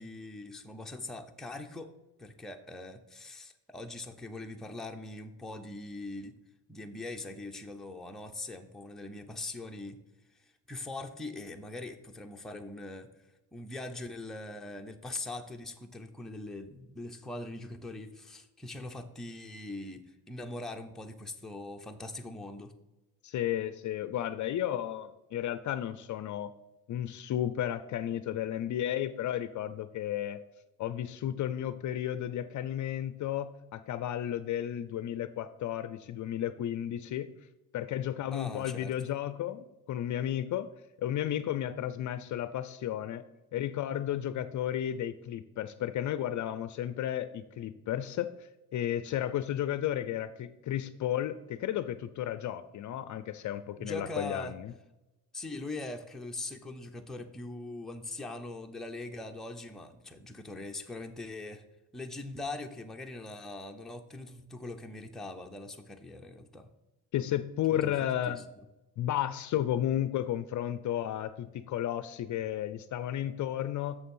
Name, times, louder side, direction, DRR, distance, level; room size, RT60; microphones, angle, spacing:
voice 1, 0.0-1.9 2.2-6.3 6.7-10.0 10.3-13.1 13.5-22.7 38.3-39.1 53.8-54.6 55.3-61.6 61.9-66.7 67.7-68.4, left 2 dB, ahead, 3 dB, 0.6 m, -42 dB
voice 2, 23.2-26.5 26.9-30.4 30.8-37.3 37.7-40.7 41.0-43.2 43.5-48.3 48.7-54.7 67.1-68.4 69.0-74.0, left 11 dB, 50° left, 12 dB, 0.5 m, -33 dB
6.9 x 6.8 x 5.4 m, 1.0 s
cardioid pair, 135°, 40 cm